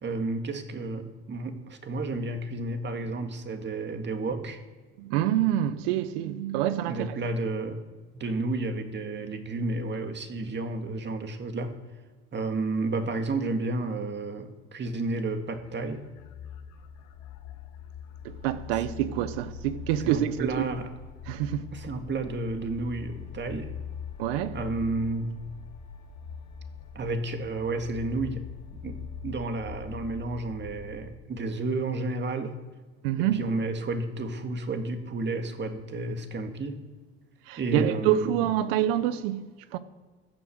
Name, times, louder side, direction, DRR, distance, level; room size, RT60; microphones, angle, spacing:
voice 1, 0.0-4.6 6.9-7.8 8.1-11.7 12.3-16.0 18.7-18.8 20.0-20.9 21.7-23.7 24.5-25.4 27.0-28.5 28.8-32.6 33.2-36.8 37.6-38.3, right 2 dB, 40° right, 2.0 m, -31 dB
voice 2, 5.0-7.2 18.2-20.7 21.3-21.7 24.2-24.6 33.0-33.4 37.5-39.4 39.7-39.8, right 12 dB, 85° right, 0.8 m, -26 dB
sound 1, 15.5-31.1, left 6 dB, 75° left, 1.4 m, -42 dB
15.0 x 7.3 x 6.6 m
supercardioid pair, 70°, 29 cm